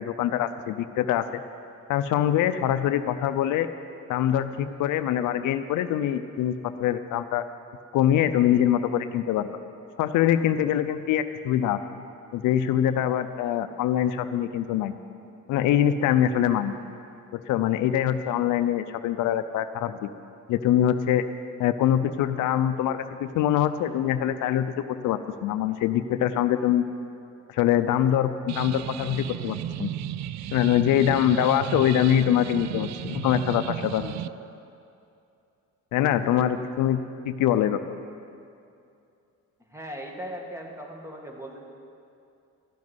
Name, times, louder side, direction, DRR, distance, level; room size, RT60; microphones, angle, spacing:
voice 1, 0.0-1.4 1.9-3.7 4.1-7.4 7.9-9.5 10.0-11.8 12.3-14.9 15.5-16.8 17.3-20.1 20.5-21.2 21.6-26.8 27.5-29.9 30.5-34.1 35.9-37.8, left 10 dB, 85° left, 11 dB, 0.6 m, -24 dB
sound 1, 28.5-34.3, right 12 dB, 65° right, 0.4 m, -34 dB
voice 2, 39.7-41.7, equal, 10° right, 1 dB, 2.0 m, -38 dB
12.5 x 7.4 x 9.5 m, 2.6 s
cardioid pair, 90°, 30 cm